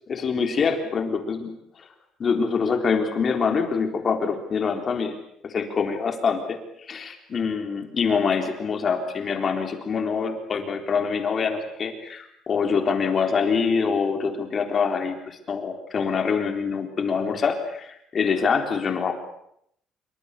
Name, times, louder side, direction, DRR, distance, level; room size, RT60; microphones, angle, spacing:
voice 1, 0.1-1.5 2.2-5.2 5.4-19.1, left 5 dB, 30° left, 5 dB, 3.8 m, -25 dB
26.5 x 24.5 x 8.3 m, 0.74 s
cardioid pair, 165°, 0 cm